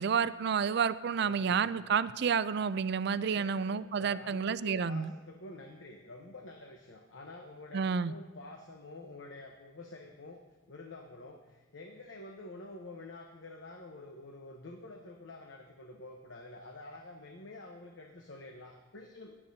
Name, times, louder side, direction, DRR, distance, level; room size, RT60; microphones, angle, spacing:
voice 1, 0.0-5.1 7.7-8.1, right 6 dB, 60° right, 15 dB, 0.4 m, -30 dB
voice 2, 1.2-1.6 3.3-10.4 10.7-19.3, left 2 dB, 80° left, 2 dB, 1.0 m, -48 dB
18.0 x 11.0 x 2.8 m, 1.2 s
head